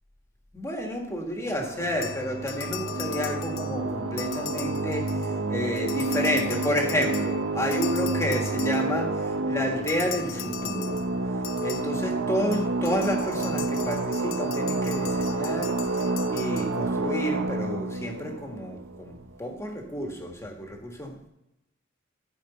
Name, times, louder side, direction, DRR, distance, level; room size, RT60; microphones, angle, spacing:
voice 1, 0.5-11.0 11.6-15.7 16.3-21.3, equal, 15° left, 1 dB, 1.6 m, -30 dB
sound 1, 1.4-19.6, right 2 dB, 70° right, 0.8 m, -29 dB
sound 2, 2.0-5.5 5.8-9.2 9.9-17.1, left 11 dB, 80° left, 0.6 m, -40 dB
14.5 x 5.1 x 4.2 m, 0.87 s
head